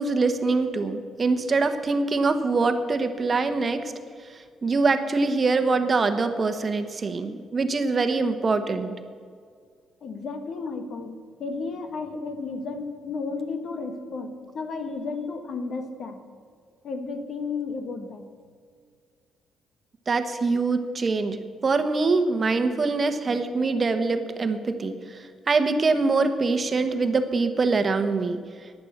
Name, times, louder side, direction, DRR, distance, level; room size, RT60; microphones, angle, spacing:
voice 1, 0.0-3.9 4.6-9.0 20.1-28.4, right 3 dB, 35° right, 8 dB, 1.1 m, -24 dB
voice 2, 10.0-16.2 16.8-18.2, left 4 dB, 60° left, 7 dB, 1.5 m, -33 dB
11.5 x 10.0 x 7.3 m, 2.1 s
cardioid pair, 90°, 0 cm